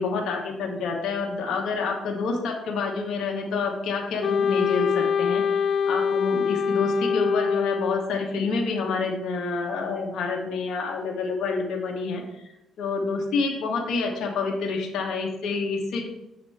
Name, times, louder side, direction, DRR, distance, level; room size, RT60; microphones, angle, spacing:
voice 1, 0.0-12.4 12.8-16.0, left 4 dB, 75° left, 0 dB, 1.1 m, -28 dB
Wind instrument woodwind instrument, 4.2-8.2, left 6 dB, 55° left, 0.3 m, -24 dB
6.7 x 2.9 x 5.6 m, 0.89 s
cardioid pair, 90°, 0 cm